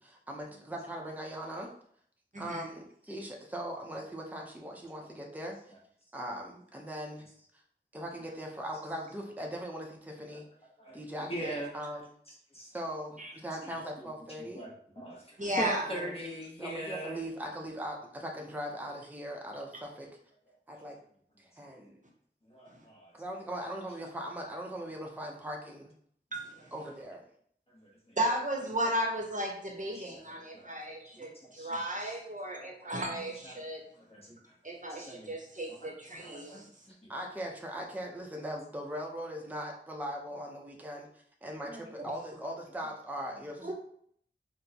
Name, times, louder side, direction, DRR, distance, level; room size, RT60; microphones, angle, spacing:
voice 1, 0.0-1.7 2.4-5.5 6.1-7.2 7.9-10.4 10.9-12.0 12.7-14.6 15.5-16.1 16.6-20.1 20.7-21.0 21.6-21.9 23.2-25.9 26.7-27.2 37.1-41.1 41.4-43.7, equal, 10° right, 0 dB, 0.6 m, -40 dB
voice 2, 2.3-2.6 13.2-13.4 15.4-15.9 26.3-26.4 28.2-33.8 34.6-36.7 42.0-42.1 43.6-43.7, right 1 dB, 40° right, 0 dB, 0.8 m, -34 dB
voice 3, 10.8-11.8 12.3-12.7 13.6-14.1 14.4-17.2 21.6-21.7 22.4-23.1 26.8-26.9 27.7-28.2 29.9-30.8 31.1-32.1 32.8-33.0 33.4-33.6 33.9-34.6 34.9-35.3 35.7-36.6 36.9-37.1 41.6-41.9 43.3-43.4, right 1 dB, 30° left, -3 dB, 0.9 m, -42 dB
4.3 x 2.1 x 2.8 m, 0.63 s
wide cardioid pair, 55°, 20 cm